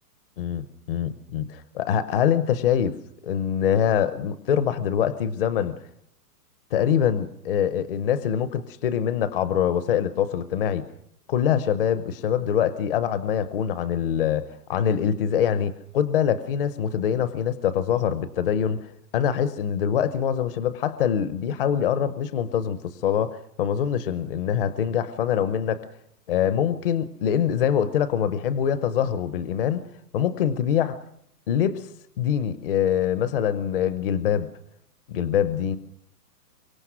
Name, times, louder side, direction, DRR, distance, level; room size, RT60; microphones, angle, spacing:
voice 1, 0.4-3.0 3.2-5.8 6.7-10.9 11.3-25.8 26.3-29.8 30.1-31.0 31.5-31.9 32.2-34.5 35.1-35.8, left 8 dB, 35° left, 13 dB, 0.8 m, -24 dB
24.5 x 22.5 x 6.2 m, 0.73 s
hypercardioid pair, 165°, 47 cm